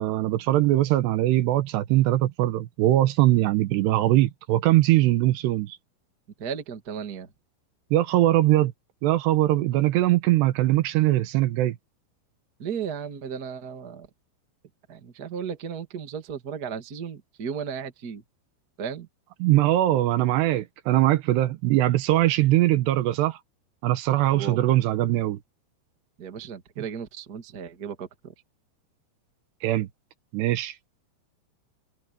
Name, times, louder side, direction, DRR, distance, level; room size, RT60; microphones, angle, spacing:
voice 1, 0.0-5.8 7.9-8.7 9.0-11.8 19.4-23.4 23.8-25.4 29.6-29.9 30.3-30.7, right 15 dB, 80° right, 3.0 m, -21 dB
voice 2, 6.4-7.3 12.6-14.1 14.9-18.2 18.8-19.1 24.3-24.6 26.2-28.3, right 7 dB, 40° right, 1.4 m, -35 dB
omnidirectional pair, 5.1 m